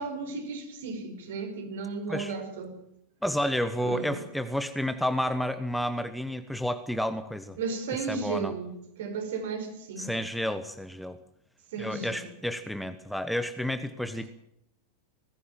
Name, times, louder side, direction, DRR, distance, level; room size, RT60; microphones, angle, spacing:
voice 1, 0.0-2.7 3.8-4.3 7.6-10.2 11.7-12.3 14.1-14.3, right 4 dB, 55° right, 5.1 m, -34 dB
voice 2, 3.2-7.6 8.1-8.5 10.0-11.2 11.8-14.3, equal, ahead, 1.2 m, -30 dB
21.0 x 15.5 x 9.3 m
figure-of-eight pair, 90°, 0 cm